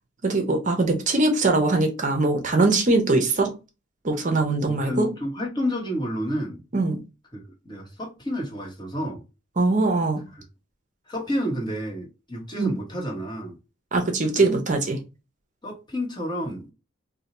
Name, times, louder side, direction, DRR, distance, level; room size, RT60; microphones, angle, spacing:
voice 1, 0.2-3.5 4.0-5.1 6.7-7.0 9.6-10.2 12.6-12.7 13.9-15.0, right 2 dB, 40° right, 0.6 m, -22 dB
voice 2, 4.6-6.6 7.3-9.2 10.3-10.4 11.1-13.6 15.6-16.7, equal, 20° left, 1.1 m, -30 dB
2.7 x 2.1 x 4.0 m
head